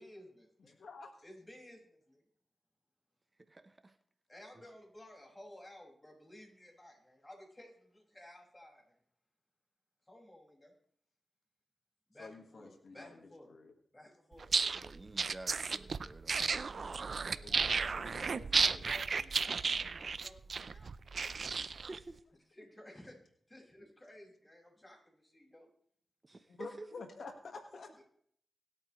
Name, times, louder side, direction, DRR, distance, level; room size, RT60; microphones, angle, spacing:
voice 1, 0.0-0.8 1.2-1.8 2.1-2.2 4.3-8.8 10.1-10.7 12.1-13.5 13.9-14.5 16.5-20.9 22.5-23.2 23.5-25.7, left 1 dB, 20° left, 0 dB, 5.6 m, -55 dB
voice 2, 0.7-1.2 12.2-13.7 17.4-18.9 26.5-28.0, left 4 dB, 75° left, 6 dB, 1.5 m, -50 dB
voice 3, 3.4-4.0 14.7-16.9 21.4-22.2 26.2-26.9, right 2 dB, 35° right, 10 dB, 0.9 m, -51 dB
sound 1, 14.4-22.0, right 5 dB, 65° right, 0.5 m, -33 dB
24.0 x 8.5 x 3.1 m, 0.63 s
cardioid pair, 60°, 0 cm